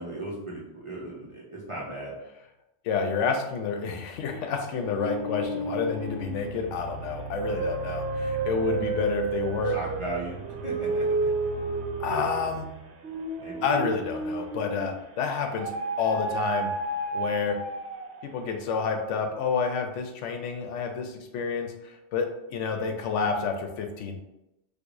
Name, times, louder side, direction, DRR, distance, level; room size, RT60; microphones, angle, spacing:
voice 1, 0.0-2.1 9.6-11.3 13.4-13.7, right 2 dB, 35° right, -5 dB, 0.6 m, -37 dB
voice 2, 2.8-9.8 12.0-12.7 13.6-16.7 17.1-17.6 18.2-24.2, left 5 dB, 85° left, 5 dB, 0.9 m, -29 dB
sound 1, 4.8-15.0 15.6-18.3, right 3 dB, 70° right, 0.8 m, -31 dB
4.6 x 2.4 x 2.5 m, 0.92 s
omnidirectional pair, 1.2 m